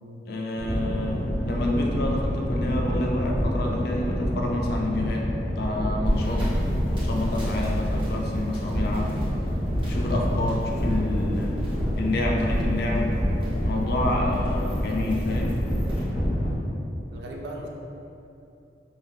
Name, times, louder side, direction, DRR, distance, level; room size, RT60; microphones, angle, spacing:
voice 1, 0.3-5.3 5.6-6.5 6.9-9.1 9.8-11.6 12.0-13.1 13.6-15.6, left 2 dB, 55° left, -1 dB, 0.4 m, -28 dB
sound 1, 0.6-16.6, equal, 5° left, 0.5 m, -27 dB
sound 2, 6.0-16.0, equal, 30° right, 1.2 m, -35 dB
voice 2, 17.1-17.7, right 1 dB, 65° right, 0 dB, 0.4 m, -38 dB
2.6 x 2.3 x 3.4 m, 2.7 s
head